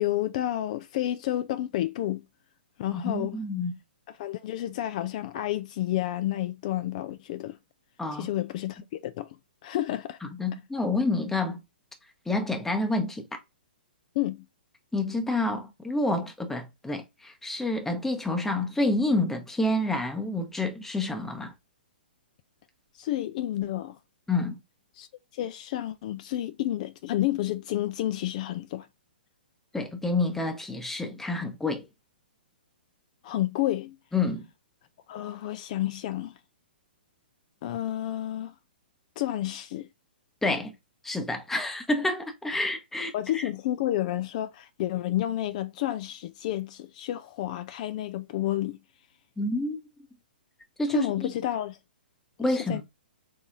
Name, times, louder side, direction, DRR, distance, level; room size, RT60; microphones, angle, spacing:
voice 1, 0.0-2.2 2.8-3.4 4.2-7.6 8.1-9.4 9.6-10.2 14.2-14.5 23.0-24.0 24.9-25.1 25.3-28.9 33.2-34.0 35.1-36.3 37.6-38.5 39.2-39.9 43.1-48.8 50.9-51.8 52.5-52.8, left 13 dB, 45° left, 0.4 m, -30 dB
voice 2, 2.9-3.8 8.0-8.3 10.2-11.6 12.3-13.2 14.9-21.5 24.3-24.6 29.7-31.9 34.1-34.4 40.4-40.7 41.0-43.4 49.4-49.8 50.8-51.3 52.4-52.8, left 2 dB, 5° left, 0.8 m, -28 dB
4.0 x 2.8 x 3.6 m
hypercardioid pair, 125°, 5 cm